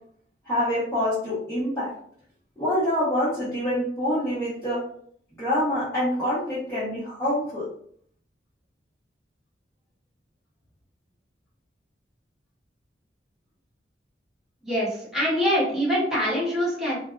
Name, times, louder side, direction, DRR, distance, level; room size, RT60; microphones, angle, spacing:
voice 1, 0.5-1.9 2.6-4.8 5.4-7.7, left 1 dB, 15° left, -13 dB, 0.9 m, -26 dB
voice 2, 14.6-17.0, equal, ahead, -10 dB, 1.3 m, -24 dB
2.5 x 2.2 x 2.3 m, 0.62 s
head